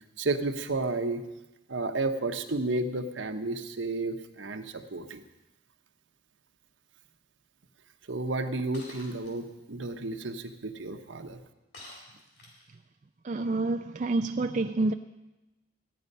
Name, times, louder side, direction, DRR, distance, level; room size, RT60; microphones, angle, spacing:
voice 1, 0.2-1.2 1.7-5.2 8.1-11.4, right 2 dB, 75° right, 1.0 m, -32 dB
Shatter, 8.7-9.3 11.7-12.8, left 2 dB, 60° left, 4.5 m, -48 dB
voice 2, 13.2-14.9, right 2 dB, 40° right, 0.4 m, -28 dB
14.5 x 10.0 x 5.5 m
head